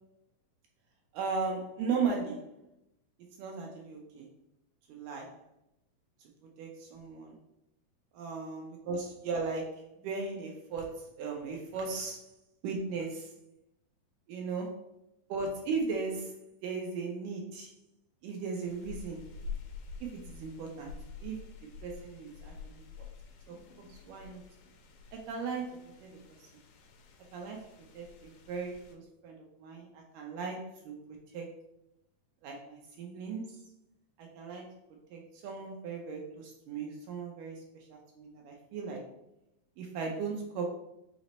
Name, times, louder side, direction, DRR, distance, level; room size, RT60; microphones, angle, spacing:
voice 1, 1.1-2.6 3.4-4.3 4.9-5.4 6.2-6.3 6.6-7.4 8.1-12.3 12.6-13.4 14.3-14.9 15.3-16.4 16.6-17.7 18.2-19.3 20.0-23.1 23.5-24.4 25.1-26.5 27.3-27.7 27.9-31.6 32.4-33.6 34.2-34.7 35.1-39.1 39.8-40.7, right 4 dB, 80° right, 1 dB, 1.9 m, -37 dB
sound 1, 18.6-29.0, left 5 dB, 90° left, 2.4 m, -48 dB
5.8 x 2.0 x 4.0 m, 0.86 s
omnidirectional pair, 4.1 m